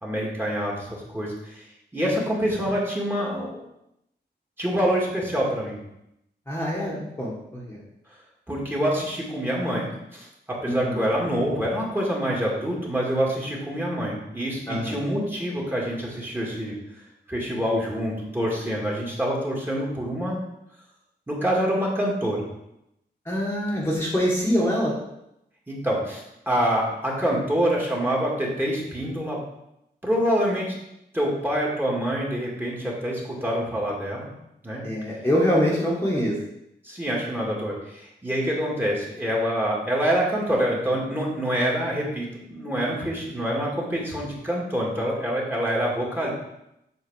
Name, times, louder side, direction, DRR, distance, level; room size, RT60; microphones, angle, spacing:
voice 1, 0.0-1.7 1.9-3.6 4.6-5.8 8.5-16.7 17.3-20.4 21.3-22.5 25.7-29.4 30.0-30.7 31.1-34.3 34.6-34.8 36.8-46.3, equal, 10° right, -3 dB, 2.1 m, -26 dB
voice 2, 6.5-7.8 10.6-11.0 14.7-14.9 23.3-24.9 34.8-36.4, equal, 15° left, -6 dB, 1.6 m, -24 dB
8.1 x 4.3 x 6.3 m, 0.83 s
wide cardioid pair, 140°, 18 cm